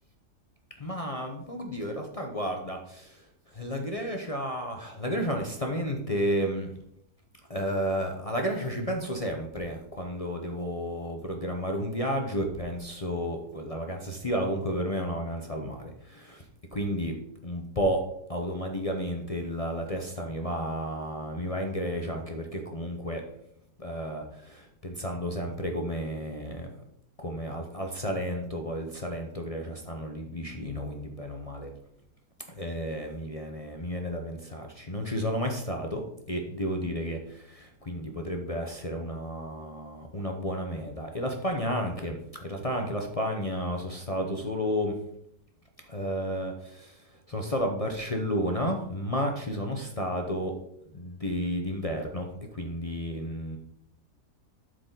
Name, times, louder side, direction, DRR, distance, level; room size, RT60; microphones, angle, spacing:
voice 1, 0.8-3.2 3.5-6.7 7.5-16.4 16.7-17.1 17.4-18.0 18.3-23.2 23.8-26.7 27.2-31.7 32.5-36.0 36.3-44.9 45.9-47.0 47.3-50.5 50.9-53.6, equal, 35° left, 2 dB, 0.6 m, -32 dB
12.0 x 4.8 x 3.9 m, 0.75 s
omnidirectional pair, 1.7 m